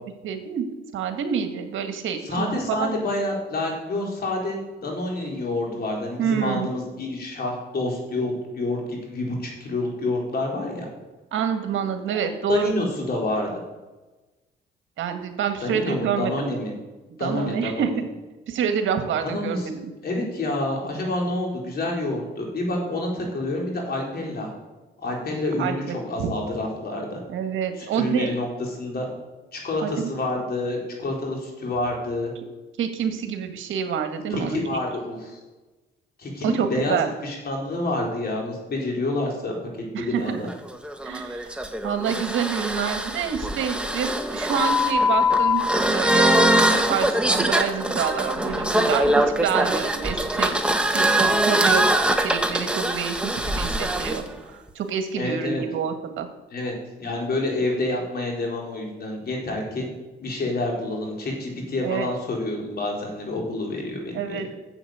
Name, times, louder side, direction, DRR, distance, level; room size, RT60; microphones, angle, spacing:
voice 1, 0.2-0.7 0.9-2.9 6.2-6.7 11.3-12.7 15.0-16.5 17.2-17.9 18.5-19.9 25.6-26.3 27.3-28.3 29.8-30.1 32.8-34.8 36.4-37.1 39.9-40.4 41.0-46.3 46.7-50.6 50.9-51.8 52.2-54.2 54.7-56.3 61.8-62.1 64.1-64.5, right 7 dB, 80° right, 6 dB, 1.7 m, -27 dB
voice 2, 2.2-10.9 12.1-12.2 12.5-13.5 15.6-16.7 17.2-17.9 19.2-19.7 20.0-24.5 25.0-27.2 27.8-28.5 28.8-29.1 29.5-32.3 34.3-35.4 36.2-39.5 39.9-40.5 55.2-55.6 56.5-56.7 57.0-59.9 60.2-64.4, left 2 dB, 50° left, 0 dB, 4.3 m, -28 dB
sound 1, 40.5-54.2, equal, 5° right, 1.3 m, -22 dB
10.0 x 7.8 x 8.0 m, 1.2 s
cardioid pair, 90°, 20 cm